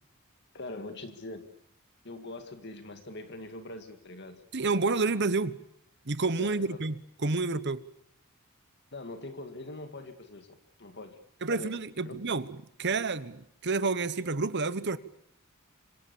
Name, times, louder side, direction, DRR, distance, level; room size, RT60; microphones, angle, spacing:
voice 1, 0.5-1.4 2.0-4.4 6.4-6.8 8.9-10.5 10.8-11.2 11.5-11.8 12.0-12.3, left 2 dB, 50° left, 7 dB, 2.0 m, -42 dB
voice 2, 4.5-5.6 6.0-6.9 7.2-7.8 11.4-12.5 12.8-15.0, right 3 dB, 50° right, 14 dB, 1.1 m, -29 dB
26.0 x 26.0 x 7.1 m, 0.72 s
head